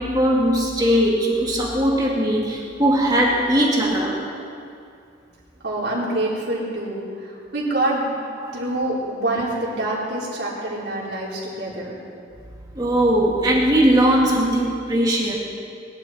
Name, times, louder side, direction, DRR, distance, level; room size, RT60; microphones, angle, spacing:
voice 1, 0.0-4.2 8.4-8.6 9.8-9.9 12.7-15.3, right 1 dB, 20° right, -3 dB, 2.4 m, -19 dB
voice 2, 5.6-8.1 8.5-12.0, right 1 dB, 70° right, -6 dB, 4.5 m, -26 dB
22.0 x 12.0 x 4.5 m, 2.4 s
head